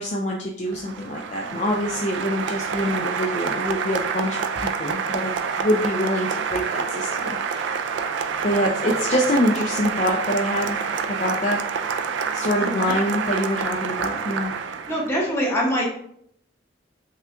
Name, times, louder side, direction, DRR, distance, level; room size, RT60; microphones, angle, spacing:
voice 1, 0.0-7.9 8.4-11.7 12.3-14.5, left 1 dB, 40° left, -1 dB, 0.4 m, -25 dB
Applause, 0.7-15.1, right 6 dB, 70° right, 0.3 m, -27 dB
voice 2, 12.6-12.9 14.9-15.9, equal, 15° left, -4 dB, 1.0 m, -24 dB
5.5 x 2.3 x 2.5 m, 0.68 s
head